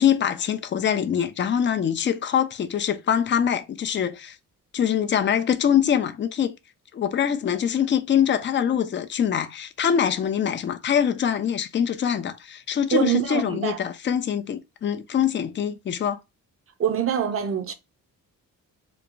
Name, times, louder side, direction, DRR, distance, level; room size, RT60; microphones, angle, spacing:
voice 1, 0.0-4.4 4.7-6.6 6.9-16.2, left 8 dB, 35° left, 0.4 m, -24 dB
voice 2, 12.9-13.8 16.8-17.7, right 9 dB, 40° right, 0.6 m, -24 dB
3.0 x 2.1 x 2.5 m
cardioid pair, 85°, 34 cm